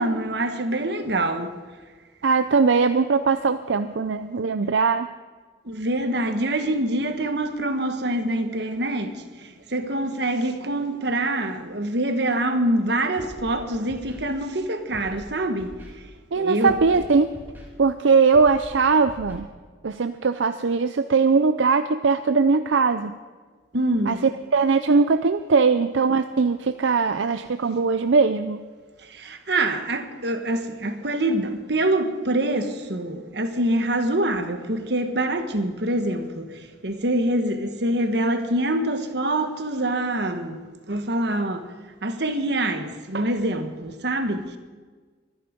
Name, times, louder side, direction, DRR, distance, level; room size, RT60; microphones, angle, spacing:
voice 1, 0.0-1.6 5.6-15.8 16.3-16.8 23.7-24.2 29.1-41.7 42.0-44.6, right 1 dB, 60° right, 1.4 m, -25 dB
voice 2, 2.2-5.1 16.3-17.3 17.8-19.5 19.8-23.1 24.1-24.2 24.5-28.6, right 4 dB, 75° right, 0.5 m, -20 dB
Scratching (performance technique), 13.2-13.5 13.9-14.2 14.9-15.2 15.6-15.9 16.6-17.0 17.3-17.7 18.3-18.7 19.0-19.3, equal, 10° right, 3.5 m, -42 dB
23.5 x 10.5 x 5.2 m
head